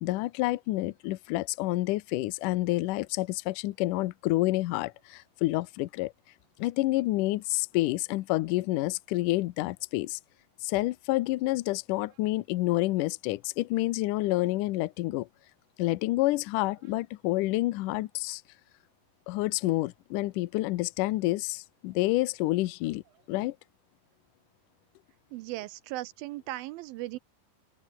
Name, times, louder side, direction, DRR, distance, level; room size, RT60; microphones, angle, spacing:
voice 1, 0.0-6.1 6.6-10.2 10.6-15.3 15.8-18.4 19.3-23.0 23.3-23.6, left 18 dB, 75° left, 1.9 m, -28 dB
voice 2, 25.3-27.2, right 17 dB, 80° right, 2.2 m, -37 dB
open air
omnidirectional pair, 4.6 m